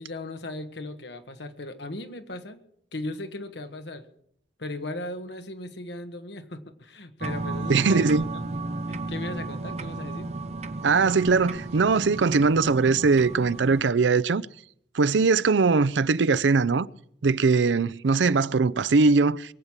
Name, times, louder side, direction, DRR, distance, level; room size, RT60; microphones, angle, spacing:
voice 1, 0.0-2.6 2.9-4.1 4.6-8.4 8.9-10.3, left 2 dB, 70° left, 1.6 m, -37 dB
sound 1, 7.2-13.8, right 2 dB, 35° right, 0.7 m, -34 dB
voice 2, 7.7-8.2 10.8-14.5 14.9-16.9 17.2-19.5, right 4 dB, 80° right, 0.5 m, -21 dB
22.5 x 8.1 x 7.3 m
head